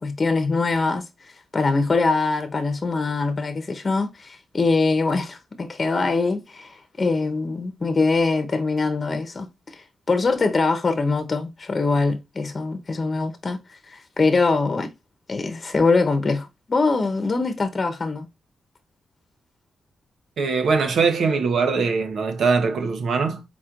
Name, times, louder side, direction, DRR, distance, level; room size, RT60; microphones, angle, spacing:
voice 1, 0.0-14.9 15.3-18.3, left 3 dB, 40° left, 0.9 m, -23 dB
voice 2, 20.4-23.4, right 4 dB, 80° right, 1.1 m, -21 dB
4.4 x 4.2 x 2.5 m
cardioid pair, 75°, 0 cm